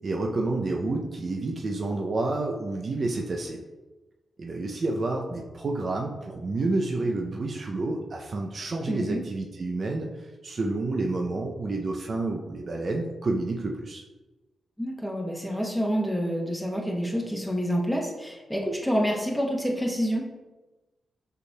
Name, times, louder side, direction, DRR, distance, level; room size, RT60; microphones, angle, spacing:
voice 1, 0.0-3.6 4.4-14.0, right 2 dB, 55° right, 1 dB, 0.5 m, -29 dB
voice 2, 8.9-9.2 14.8-20.2, equal, 5° left, -1 dB, 1.0 m, -28 dB
6.6 x 3.2 x 2.2 m, 1.1 s
supercardioid pair, 45°, 0 cm